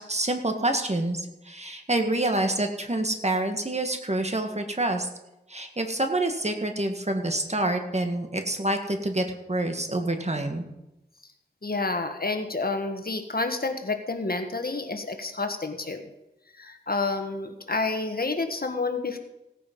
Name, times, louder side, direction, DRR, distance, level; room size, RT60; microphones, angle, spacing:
voice 1, 0.0-5.1 5.5-10.6, right 1 dB, 35° right, 5 dB, 1.7 m, -27 dB
voice 2, 11.6-16.1 16.6-19.2, left 3 dB, 55° left, 7 dB, 1.5 m, -29 dB
17.0 x 9.3 x 5.4 m, 0.92 s
wide cardioid pair, 65°, 19 cm